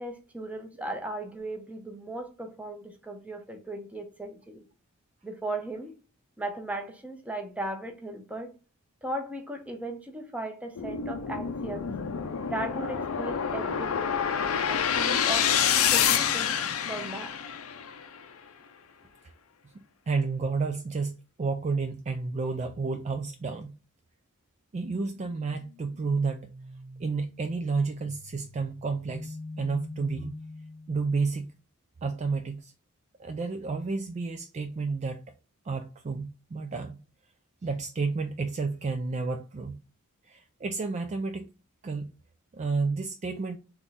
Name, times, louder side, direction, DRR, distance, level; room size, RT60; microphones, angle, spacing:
voice 1, 0.0-4.7 5.2-5.9 6.4-8.5 9.0-11.9 12.5-14.1 14.7-15.5 15.9-16.6 16.9-17.4, right 1 dB, 5° right, 0.8 m, -37 dB
sound 1, 10.8-18.0, left 8 dB, 70° left, 0.6 m, -27 dB
voice 2, 19.7-23.7 24.7-26.4 27.0-30.3 30.9-31.5 32.0-32.7 33.2-35.2 35.7-37.0 37.6-39.8 40.3-41.5 41.8-42.1 42.5-43.6, right 4 dB, 30° right, 0.3 m, -31 dB
sound 2, 25.0-31.0, left 2 dB, 65° right, 1.3 m, -44 dB
3.5 x 3.1 x 4.0 m
head